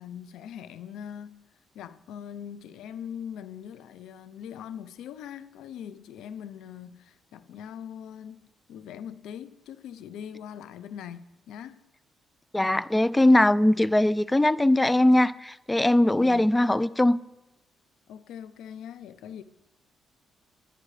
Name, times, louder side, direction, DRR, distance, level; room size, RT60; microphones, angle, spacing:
voice 1, 0.0-1.4 1.7-11.8 16.2-16.6 18.1-19.4, left 9 dB, 85° left, 0.7 m, -41 dB
voice 2, 12.5-17.2, left 1 dB, 10° left, 0.5 m, -21 dB
20.5 x 10.5 x 3.3 m
cardioid pair, 90°, 0 cm